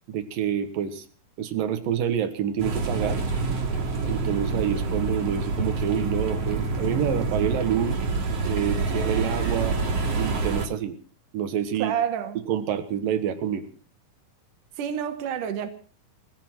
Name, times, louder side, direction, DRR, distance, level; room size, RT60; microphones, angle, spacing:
voice 1, 0.1-1.0 1.4-3.2 4.1-8.0 8.5-9.8 10.1-11.0 11.3-11.9 12.4-13.7, right 9 dB, 90° right, 3.2 m, -27 dB
sound 1, 2.6-10.7, right 3 dB, 50° right, 3.4 m, -27 dB
voice 2, 11.8-12.5 14.8-15.7, right 9 dB, 70° right, 2.9 m, -28 dB
19.5 x 16.0 x 4.5 m
omnidirectional pair, 3.8 m